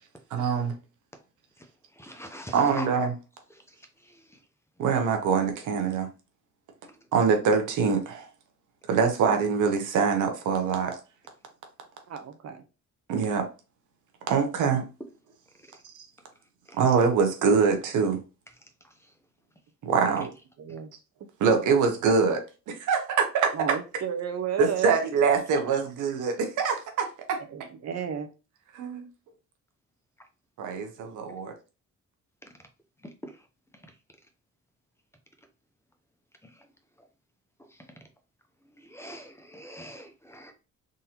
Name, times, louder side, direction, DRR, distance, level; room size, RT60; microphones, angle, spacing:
voice 1, 0.3-0.7 2.5-3.1 4.8-6.1 7.1-8.3 8.9-11.0 13.1-13.5 14.3-14.8 16.7-18.2 19.8-20.3 21.4-23.8 24.6-27.4 28.7-29.0 30.6-31.5, right 5 dB, 85° right, 0.9 m, -24 dB
voice 2, 2.0-2.9 6.8-6.9 38.9-40.5, equal, 10° left, 0.7 m, -42 dB
voice 3, 12.1-12.6 20.1-20.3 20.6-20.9 23.5-24.9 27.5-28.3, right 8 dB, 60° right, 0.7 m, -33 dB
3.7 x 2.7 x 2.9 m
cardioid pair, 90°, 30 cm